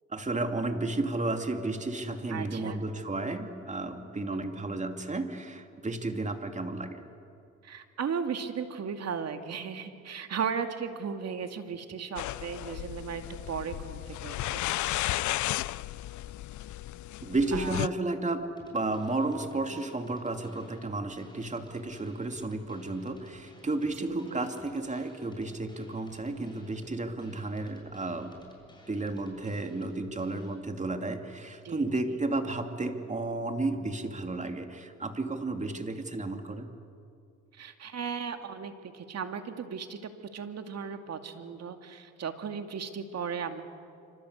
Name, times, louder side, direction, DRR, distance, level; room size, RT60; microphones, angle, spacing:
voice 1, 0.1-7.1 17.2-18.5 18.7-28.4 28.9-36.7, right 2 dB, 25° right, 5 dB, 2.7 m, -32 dB
voice 2, 2.3-2.8 4.3-4.4 7.6-15.1 17.5-17.9 24.0-24.5 31.6-32.2 37.5-43.6, right 6 dB, 55° right, 7 dB, 2.4 m, -36 dB
sound 1, 12.2-17.9, left 15 dB, 75° left, 0.6 m, -34 dB
sound 2, 18.6-30.6, left 2 dB, 15° left, 8.0 m, -56 dB
27.0 x 26.0 x 8.2 m, 2.5 s
cardioid pair, 90°, 30 cm